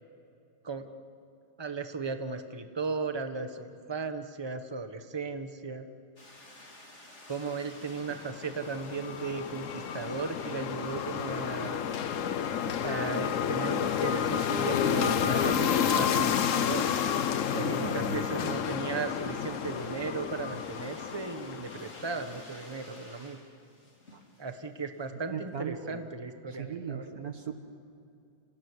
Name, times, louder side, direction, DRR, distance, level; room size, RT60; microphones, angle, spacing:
voice 1, 1.6-5.9 7.3-11.8 12.8-16.9 17.5-23.4 24.4-27.2, right 4 dB, 15° right, 8 dB, 1.0 m, -36 dB
sound 1, 6.2-25.1, left 1 dB, 35° left, 3.8 m, -54 dB
sound 2, 8.1-22.5, left 8 dB, 60° left, 0.9 m, -30 dB
voice 2, 17.5-18.2 24.1-24.2 25.3-26.0 26.5-27.5, right 6 dB, 50° right, 6 dB, 1.6 m, -38 dB
29.5 x 17.5 x 9.8 m, 2.5 s
omnidirectional pair, 2.2 m